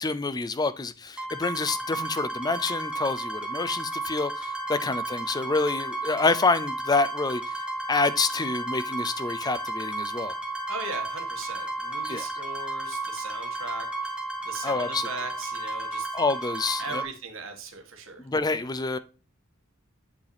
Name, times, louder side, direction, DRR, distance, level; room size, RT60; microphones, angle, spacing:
voice 1, 0.0-7.5 7.9-10.4 12.0-12.3 14.6-15.1 16.1-17.0 18.2-19.0, left 3 dB, 20° left, 0.4 m, -27 dB
sound 1, 1.2-17.0, right 2 dB, 5° right, 1.3 m, -33 dB
voice 2, 10.7-14.2 14.4-16.1 16.8-18.3, right 4 dB, 70° right, 1.9 m, -39 dB
8.1 x 5.2 x 3.4 m
head